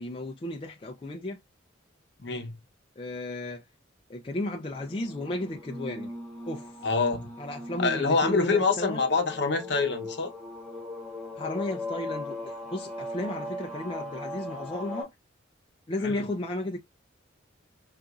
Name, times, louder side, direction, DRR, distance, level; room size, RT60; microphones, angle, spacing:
voice 1, 0.0-1.4 3.0-3.6 4.1-6.1 6.5-6.7 7.4-9.0 11.4-15.1 15.9-16.8, left 1 dB, 25° left, 0.3 m, -34 dB
voice 2, 2.2-2.6 6.8-7.3 7.8-10.3 16.0-16.2, left 4 dB, 60° left, 0.8 m, -26 dB
sound 1, 4.7-15.0, left 1 dB, 5° left, 0.8 m, -39 dB
3.8 x 2.5 x 2.3 m
head